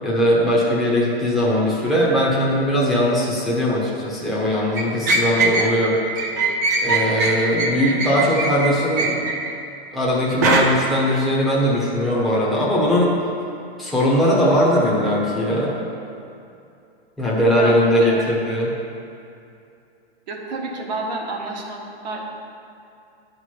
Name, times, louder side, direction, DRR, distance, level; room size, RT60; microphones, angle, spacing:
voice 1, 0.0-6.3 6.8-9.3 9.9-13.1 13.8-15.7 17.2-18.7, equal, ahead, -7 dB, 1.0 m, -20 dB
sound 1, 4.7-5.7 6.1-9.5 10.4-10.6, right 3 dB, 15° right, 0.4 m, -21 dB
voice 2, 17.5-18.4 20.3-22.2, right 2 dB, 45° right, -1 dB, 1.3 m, -29 dB
9.5 x 4.9 x 6.1 m, 2.5 s
hypercardioid pair, 165°, 32 cm